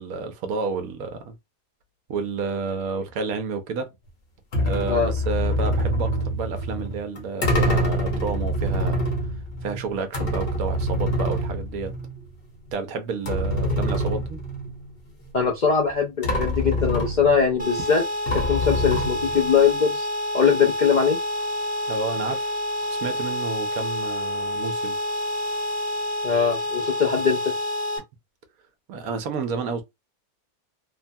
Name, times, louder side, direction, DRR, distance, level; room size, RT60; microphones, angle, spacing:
voice 1, 0.0-1.3 2.1-3.9 4.6-9.0 9.6-11.9 12.7-14.4 21.9-22.6 23.0-25.0 28.9-29.8, right 4 dB, 70° right, 1.1 m, -30 dB
sound 1, 4.5-12.3 12.7-12.8 13.2-14.9 15.9-16.0 16.2-17.6 18.3-19.5, equal, 45° left, 1.0 m, -26 dB
voice 2, 15.3-18.0 18.3-20.1 20.3-21.2 26.2-27.5, left 6 dB, 70° left, 0.4 m, -21 dB
sound 2, 17.6-28.0, left 1 dB, 10° right, 0.6 m, -28 dB
3.1 x 2.2 x 2.6 m
omnidirectional pair, 1.6 m